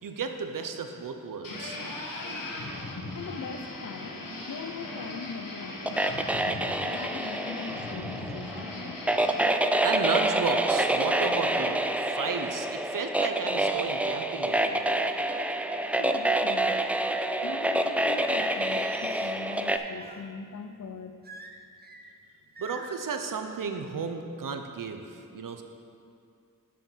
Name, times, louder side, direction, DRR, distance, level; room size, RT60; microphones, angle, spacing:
voice 1, 0.0-1.8 9.8-15.1 22.6-25.6, right 5 dB, 80° right, 6 dB, 0.7 m, -33 dB
sound 1, 1.4-9.5, left 2 dB, 80° left, 1.2 m, -38 dB
voice 2, 3.1-4.2 4.5-6.6 6.9-9.0 12.2-12.3 15.8-16.8 17.4-21.2, left 6 dB, 60° left, 8 dB, 0.6 m, -41 dB
sound 2, 5.9-19.8, right 1 dB, 5° right, 0.3 m, -27 dB
Singing, 18.1-20.3 21.2-22.1 22.6-23.1, right 2 dB, 30° right, 0.7 m, -45 dB
7.5 x 5.8 x 5.4 m, 2.4 s
wide cardioid pair, 60°, 32 cm